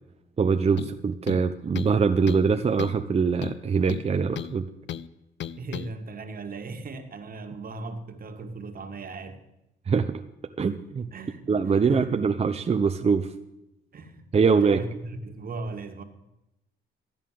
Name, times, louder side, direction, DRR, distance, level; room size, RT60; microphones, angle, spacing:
voice 1, 0.4-4.7 9.9-10.2 10.6-11.1 11.5-13.3 14.3-14.8, right 5 dB, 30° right, 0.7 m, -23 dB
sound 1, 0.8-1.0 1.3-2.0 2.3-2.5 2.8-3.0 3.4-4.6 4.9-5.1 5.4-5.9, left 10 dB, 65° left, 0.6 m, -35 dB
voice 2, 5.6-9.4 11.1-12.2 13.9-16.0, right 3 dB, 45° right, 1.9 m, -38 dB
13.0 x 8.9 x 7.6 m
cardioid pair, 90°, 20 cm